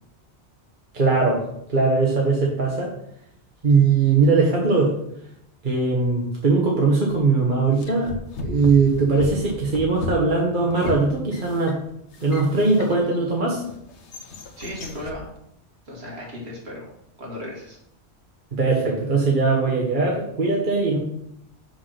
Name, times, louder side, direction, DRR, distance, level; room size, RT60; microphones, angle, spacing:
voice 1, 0.9-1.4 1.7-2.9 3.6-4.9 5.6-8.1 8.4-11.8 12.2-13.6 18.5-21.0, right 3 dB, 50° right, -2 dB, 1.4 m, -20 dB
sound 1, 7.8-13.2 13.7-15.2, left 3 dB, 90° left, 1.2 m, -35 dB
voice 2, 14.6-15.2 15.9-16.9 17.2-17.8, left 1 dB, 70° right, -3 dB, 2.6 m, -35 dB
6.0 x 5.9 x 5.9 m, 0.75 s
omnidirectional pair, 1.1 m